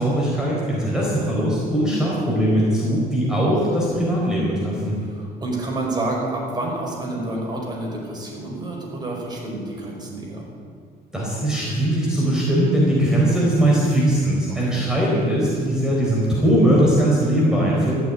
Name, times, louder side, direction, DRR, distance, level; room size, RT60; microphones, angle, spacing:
voice 1, 0.0-4.9 11.1-17.9, right 1 dB, 5° right, -5 dB, 4.1 m, -20 dB
voice 2, 5.0-10.5 14.5-14.9, right 2 dB, 25° right, -2 dB, 5.2 m, -29 dB
14.5 x 9.1 x 8.8 m, 2.1 s
cardioid pair, 110°, 17 cm